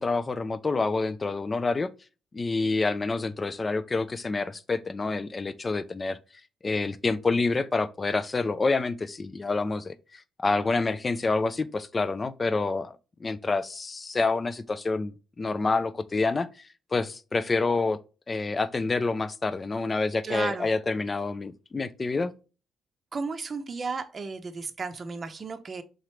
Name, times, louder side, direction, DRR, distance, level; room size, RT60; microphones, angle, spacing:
voice 1, 0.0-1.9 2.3-6.2 6.6-12.9 13.2-18.0 18.3-22.3, left 3 dB, 30° left, 0.3 m, -28 dB
voice 2, 20.2-20.7 23.1-25.8, right 4 dB, 35° right, 0.6 m, -34 dB
3.8 x 3.1 x 3.0 m
cardioid pair, 90°, 0 cm